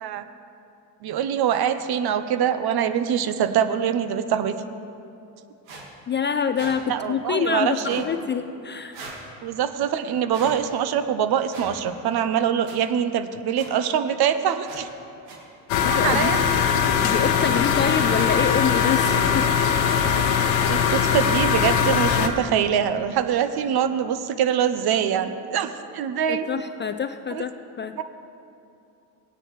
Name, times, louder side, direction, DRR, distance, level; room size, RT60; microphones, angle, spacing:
voice 1, 1.0-4.5 6.9-8.0 9.4-14.9 15.9-16.4 20.7-26.5 27.3-27.4, right 8 dB, 50° right, 11 dB, 0.7 m, -24 dB
sound 1, 5.7-5.8 6.5-6.8 7.8-8.1 8.9-9.2 10.3-10.6 11.5-11.7 12.6-12.8 13.6-13.7 14.6-14.8 15.3-15.4 16.4-16.6 17.1-17.2 18.1-18.3 19.0-19.1 19.8-20.0, right 3 dB, 75° right, 1.9 m, -40 dB
voice 2, 6.1-9.0 15.8-16.6 17.0-19.5 26.3-27.5 27.8-28.0, left 7 dB, 25° left, 8 dB, 0.4 m, -26 dB
sound 2, 15.7-22.3, left 7 dB, 85° left, 0.8 m, -21 dB
17.5 x 9.8 x 3.1 m, 2.7 s
hypercardioid pair, 65°, 48 cm